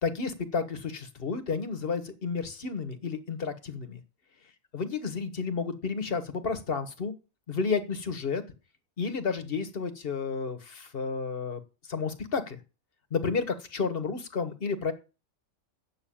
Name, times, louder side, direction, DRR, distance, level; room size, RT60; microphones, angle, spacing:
voice 1, 0.0-4.0 4.7-7.1 7.5-8.4 9.0-11.6 11.9-12.6 13.1-14.9, left 5 dB, 45° left, 9 dB, 1.6 m, -31 dB
8.5 x 7.2 x 8.7 m, 0.31 s
omnidirectional pair, 1.4 m